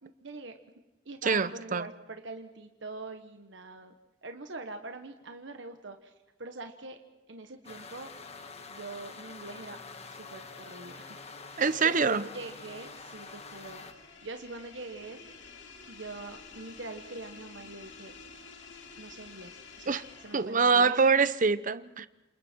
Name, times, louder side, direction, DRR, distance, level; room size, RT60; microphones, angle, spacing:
voice 1, 0.0-0.6 1.0-3.9 4.2-6.1 6.4-7.0 7.3-8.1 8.7-9.8 10.1-11.2 11.4-11.6 11.8-13.8 14.2-15.2 15.9-18.1 19.0-20.9, right 2 dB, 70° right, 1.5 m, -43 dB
voice 2, 1.2-1.9 11.6-12.2 19.9-20.0 20.3-22.1, right 5 dB, 45° right, 0.8 m, -25 dB
sound 1, 7.6-13.9, left 4 dB, 35° left, 1.6 m, -46 dB
sound 2, 9.3-20.8, left 4 dB, 70° left, 2.8 m, -52 dB
28.5 x 28.0 x 4.6 m
head